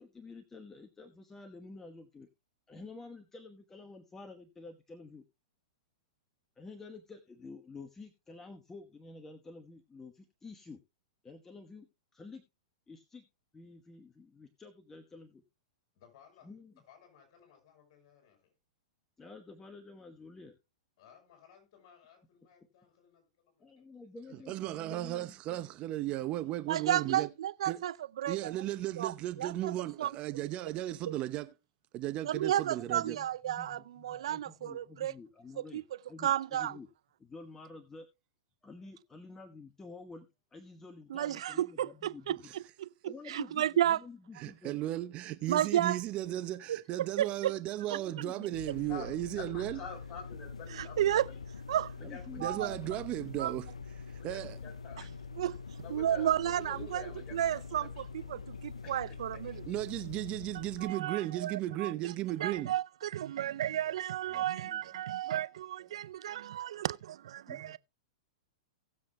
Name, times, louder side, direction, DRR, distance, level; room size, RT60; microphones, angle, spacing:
voice 1, 0.0-2.3 2.7-5.2 6.6-10.8 11.2-11.9 12.1-12.4 12.9-13.2 13.5-15.4 16.4-16.7 19.2-20.6 23.6-25.4 32.8-35.8 36.1-36.9 37.2-38.1 38.6-42.5 43.0-44.8 47.9-48.6 52.0-53.0 63.3-63.8 64.3-64.8 67.5-67.8, left 3 dB, 15° left, 1.1 m, -50 dB
voice 2, 15.9-16.6 16.9-18.5 21.0-25.1, left 8 dB, 45° left, 6.7 m, -62 dB
voice 3, 24.5-27.3 27.7-27.8 28.3-31.5 31.9-33.2 44.4-49.8 52.4-53.7 54.2-54.6 59.7-62.7, right 14 dB, 35° right, 0.8 m, -35 dB
voice 4, 26.7-28.6 29.0-30.1 32.2-35.1 35.6-35.8 36.2-36.8 41.1-44.0 45.5-46.0 46.7-47.5 47.9-48.0 50.7-51.3 51.7-51.9 52.4-52.8 53.4-53.5 55.0-55.6 55.9-59.6 60.8-62.1 62.4-67.0 67.5-67.8, right 11 dB, 65° right, 0.4 m, -33 dB
sound 1, 48.5-60.9, left 5 dB, 85° left, 0.7 m, -45 dB
voice 5, 48.9-51.4 52.1-52.7 54.2-55.1 55.8-57.4 57.8-57.9 58.8-58.9 59.4-59.8, left 5 dB, 30° left, 4.6 m, -48 dB
18.5 x 7.4 x 2.2 m
hypercardioid pair, 110°, 3 cm